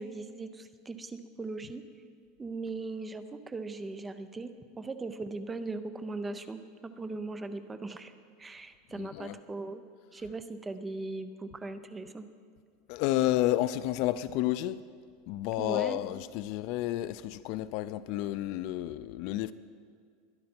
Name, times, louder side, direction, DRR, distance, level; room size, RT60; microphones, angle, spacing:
voice 1, 0.0-1.8 2.4-4.5 4.8-8.1 8.4-9.8 10.1-12.3 15.6-16.0, right 3 dB, 10° right, 10 dB, 0.5 m, -39 dB
voice 2, 9.0-9.4 12.9-14.8 15.3-19.5, left 14 dB, 45° left, 15 dB, 0.3 m, -31 dB
21.5 x 10.5 x 4.4 m, 2.1 s
supercardioid pair, 175°, 0 cm